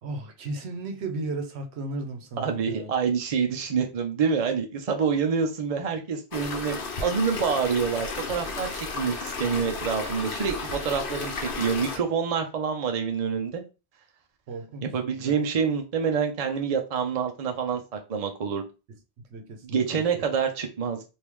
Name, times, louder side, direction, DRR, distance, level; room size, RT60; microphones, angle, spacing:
voice 1, 0.0-2.9 14.5-14.9 15.2-15.4 18.9-19.0 19.3-20.2, right 2 dB, 75° right, 1.0 m, -35 dB
voice 2, 2.4-8.7 9.0-13.6 14.9-18.6 19.6-21.0, right 6 dB, 40° right, 0.6 m, -27 dB
sound 1, 6.3-12.0, left 4 dB, 55° left, 0.9 m, -33 dB
3.5 x 2.7 x 3.1 m
omnidirectional pair, 1.1 m